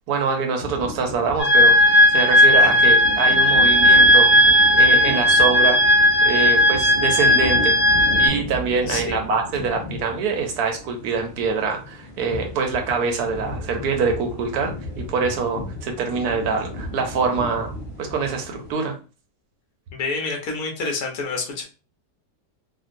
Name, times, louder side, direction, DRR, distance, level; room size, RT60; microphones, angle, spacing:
voice 1, 0.1-5.9 6.2-7.8 8.2-14.7 15.1-17.7 18.0-18.9, right 5 dB, 70° right, 4 dB, 1.1 m, -24 dB
sound 1, 0.6-18.7, left 2 dB, 20° left, 0.9 m, -34 dB
sound 2, 1.4-8.3, left 1 dB, 80° left, 1.7 m, -15 dB
voice 2, 8.9-9.2 19.9-21.6, left 3 dB, 65° left, 0 dB, 1.4 m, -28 dB
3.6 x 2.3 x 2.6 m, 0.35 s
omnidirectional pair, 1.9 m